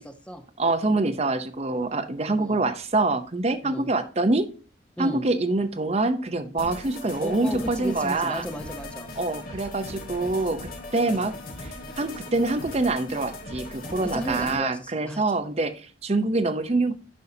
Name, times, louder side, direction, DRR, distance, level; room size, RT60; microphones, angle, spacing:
voice 1, 0.0-0.4 2.3-2.6 3.6-3.9 5.0-5.2 7.2-9.1 11.0-11.3 14.0-15.2, equal, 5° left, 7 dB, 0.8 m, -34 dB
voice 2, 0.6-4.5 5.0-8.4 9.2-16.9, right 2 dB, 35° right, 8 dB, 0.7 m, -25 dB
sound 1, 6.6-14.6, left 2 dB, 50° left, 1.5 m, -39 dB
10.5 x 5.5 x 2.8 m, 0.37 s
head